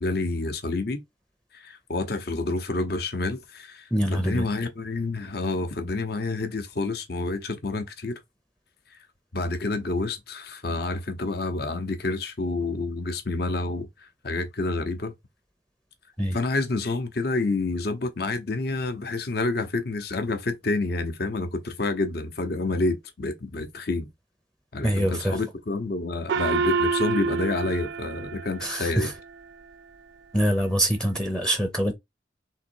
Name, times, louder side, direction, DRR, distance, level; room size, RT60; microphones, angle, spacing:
voice 1, 0.0-1.0 1.5-8.2 9.3-15.1 16.3-24.1 24.7-29.1, left 2 dB, 55° left, 0.8 m, -28 dB
voice 2, 3.9-4.5 16.2-16.4 24.8-25.4 28.6-29.1 30.3-31.9, right 1 dB, 5° left, 0.6 m, -24 dB
Gong, 26.3-29.2, right 5 dB, 65° right, 0.4 m, -28 dB
3.7 x 3.0 x 4.5 m
head